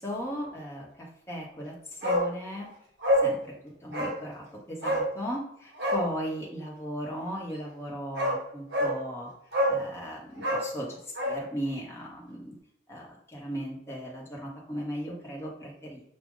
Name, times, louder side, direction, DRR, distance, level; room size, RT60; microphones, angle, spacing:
voice 1, 0.0-2.7 3.2-3.5 3.8-9.3 9.7-12.5 12.9-16.0, equal, 15° left, -3 dB, 0.9 m, -37 dB
Bark, 2.0-2.3 2.6-2.7 3.0-3.3 3.9-4.2 4.8-5.1 5.7-6.0 7.6-7.7 8.1-8.4 8.7-9.0 9.5-9.8 10.3-11.4 11.7-11.8, equal, 70° right, 1.5 m, -26 dB
6.1 x 2.2 x 3.6 m, 0.73 s
head